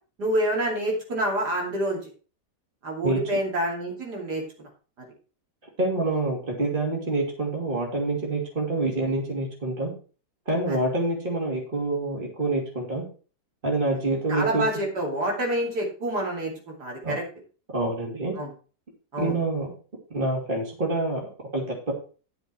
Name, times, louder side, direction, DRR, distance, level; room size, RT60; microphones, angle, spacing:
voice 1, 0.2-2.0 2.8-4.7 10.7-10.8 14.3-17.2 18.4-18.5 19.1-19.4, right 1 dB, 75° right, -1 dB, 3.4 m, -27 dB
voice 2, 3.0-3.4 5.8-9.9 10.5-13.0 13.6-14.6 17.0-17.2 17.7-18.3 19.2-19.7 20.1-21.9, right 2 dB, 30° right, -1 dB, 2.9 m, -27 dB
10.5 x 7.0 x 4.6 m, 0.37 s
omnidirectional pair, 1.8 m